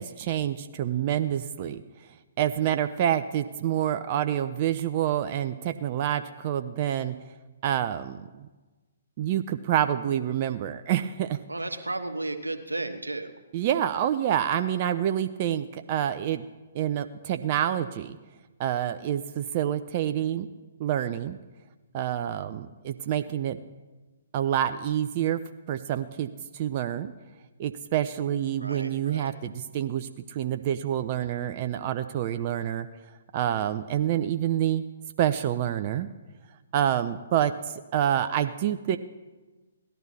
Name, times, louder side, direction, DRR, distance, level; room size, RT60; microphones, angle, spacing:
voice 1, 0.0-1.8 2.4-7.2 7.6-8.5 9.2-11.4 13.5-16.4 16.7-18.2 18.6-20.5 20.8-21.4 21.9-23.6 24.3-25.4 25.7-27.1 27.6-32.9 33.3-34.8 35.2-36.1 36.7-37.5 37.9-39.0, right 10 dB, 40° right, 9 dB, 0.5 m, -27 dB
voice 2, 11.5-13.3 28.6-29.3, right 2 dB, 90° right, 7 dB, 1.2 m, -33 dB
17.5 x 12.0 x 4.2 m, 1.2 s
figure-of-eight pair, 130°, 0 cm